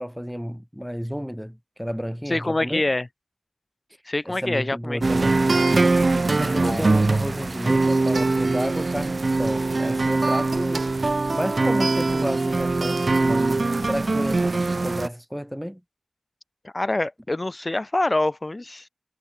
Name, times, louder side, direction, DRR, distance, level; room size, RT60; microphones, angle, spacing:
voice 1, 0.0-2.9 4.3-5.6 6.4-10.9 11.3-15.8, equal, ahead, 5.4 m, -31 dB
voice 2, 2.3-3.1 4.1-5.0 5.9-6.0 6.4-6.9 16.7-18.9, left 2 dB, 35° left, 0.9 m, -25 dB
sound 1, 5.0-15.1, right 3 dB, 55° right, 0.8 m, -22 dB
wide cardioid pair, 75°, 0 cm